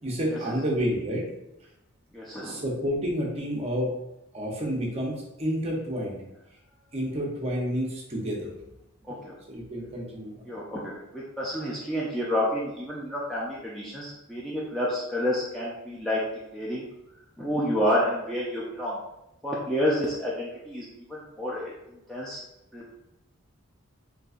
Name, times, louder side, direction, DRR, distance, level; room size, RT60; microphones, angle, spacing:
voice 1, 0.0-1.2 2.4-3.9 4.3-6.2 6.9-8.5 9.5-10.4, equal, 30° right, -2 dB, 0.7 m, -29 dB
voice 2, 2.1-2.6 9.1-9.3 10.5-16.2 16.5-16.9 17.4-19.0 19.4-21.7 22.1-22.4 22.7-22.9, left 1 dB, ahead, -7 dB, 0.4 m, -29 dB
3.7 x 2.7 x 2.4 m, 0.88 s
head